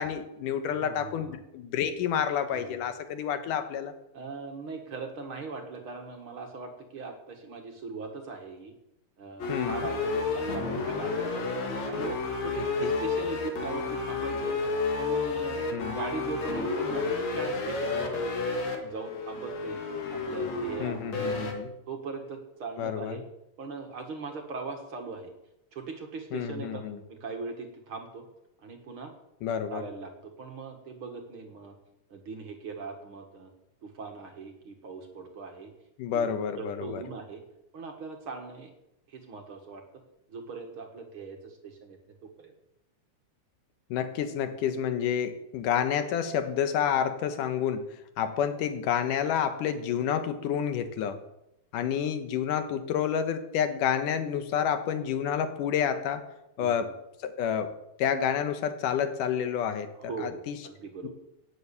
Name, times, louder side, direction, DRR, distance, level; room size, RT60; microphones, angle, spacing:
voice 1, 0.0-3.9 9.5-9.9 12.8-12.9 15.7-16.0 20.8-21.7 22.8-23.2 26.3-27.0 29.4-29.8 36.0-37.0 43.9-47.9 48.2-51.2 51.7-56.3 56.6-56.9 57.2-57.7 58.0-59.9 60.2-60.6, left 8 dB, 85° left, 9 dB, 2.7 m, -29 dB
voice 2, 0.7-1.4 2.5-2.8 4.1-8.7 9.2-11.5 11.9-14.6 15.0-15.6 15.9-18.3 18.8-19.8 20.1-21.5 21.9-23.2 23.6-25.3 25.7-26.8 27.1-28.3 28.6-29.1 29.7-31.8 32.1-33.5 33.8-35.7 36.1-37.4 37.7-38.7 39.1-40.0 40.3-42.5 56.6-56.9 60.0-61.1, right 4 dB, 50° right, 4 dB, 2.1 m, -40 dB
sound 1, 9.4-21.5, left 4 dB, 60° left, 3.1 m, -31 dB
17.5 x 7.9 x 7.0 m, 0.87 s
omnidirectional pair, 3.6 m